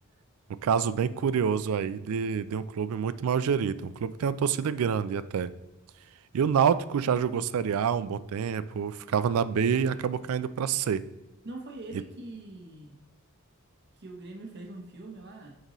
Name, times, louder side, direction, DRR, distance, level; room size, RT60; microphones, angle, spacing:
voice 1, 0.6-5.5 6.3-11.0, right 7 dB, 75° right, 15 dB, 0.4 m, -27 dB
voice 2, 11.4-13.0 14.0-15.6, right 2 dB, 50° right, 2 dB, 0.9 m, -43 dB
6.4 x 5.3 x 3.0 m, 1.1 s
head